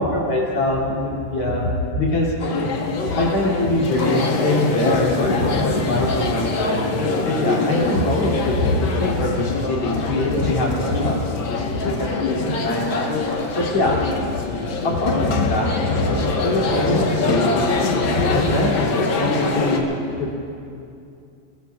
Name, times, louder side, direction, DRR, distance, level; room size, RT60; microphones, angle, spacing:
voice 1, 0.0-2.7 3.1-11.4 11.8-14.0 14.8-17.8 18.3-20.4, left 1 dB, 45° left, -4 dB, 3.6 m, -23 dB
sound 1, 2.4-19.8, left 3 dB, 70° left, 1.1 m, -24 dB
21.5 x 21.0 x 2.4 m, 2.5 s
omnidirectional pair, 4.0 m